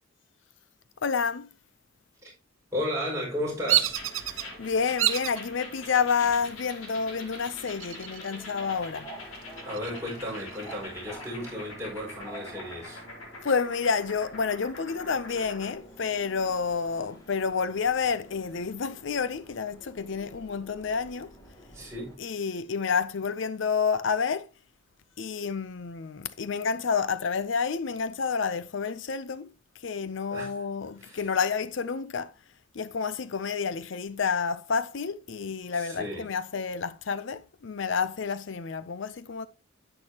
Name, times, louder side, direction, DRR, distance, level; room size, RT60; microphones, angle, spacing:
voice 1, 1.0-1.5 4.3-9.1 13.4-21.3 22.2-24.5 25.2-32.3 32.7-39.5, left 5 dB, 60° left, 0.5 m, -29 dB
voice 2, 2.7-4.0 9.6-13.0 21.6-22.2 30.3-30.5 31.0-31.2 35.7-36.3, left 1 dB, 15° right, 5.8 m, -34 dB
Subway metro underground, 3.4-22.1, equal, 15° left, 2.3 m, -50 dB
Bird vocalization bird call bird song, 3.7-4.4 5.0-5.4 6.0-6.5 7.7-8.4 8.8-8.9 9.3-10.8, right 13 dB, 75° right, 1.0 m, -28 dB
sound 1, 3.9-15.8, left 2 dB, 80° left, 4.2 m, -45 dB
10.5 x 8.8 x 2.9 m
head